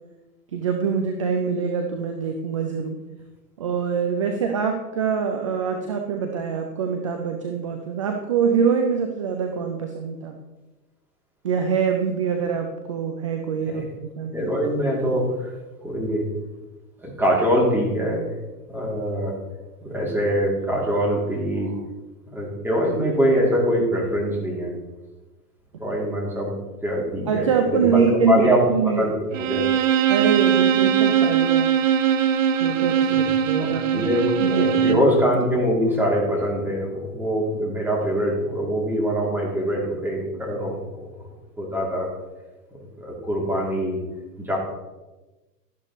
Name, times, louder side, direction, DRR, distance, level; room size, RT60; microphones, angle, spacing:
voice 1, 0.5-3.0 3.6-10.3 11.4-13.9 14.2-14.3 27.3-29.1 30.1-31.7 32.6-34.1 34.4-35.0, right 6 dB, 25° right, 5 dB, 0.3 m, -24 dB
voice 2, 14.3-15.5 15.8-16.3 17.0-18.2 18.7-19.3 19.8-21.7 22.3-24.7 25.7-26.5 26.8-28.6 29.0-29.1 29.4-29.6 33.1-33.2 33.6-41.0 41.6-42.1 43.0-44.0 44.4-44.6, equal, 5° right, -3 dB, 2.8 m, -23 dB
Bowed string instrument, 29.3-35.1, right 9 dB, 50° right, 1.0 m, -20 dB
12.5 x 11.0 x 3.1 m, 1.1 s
hypercardioid pair, 120°, 49 cm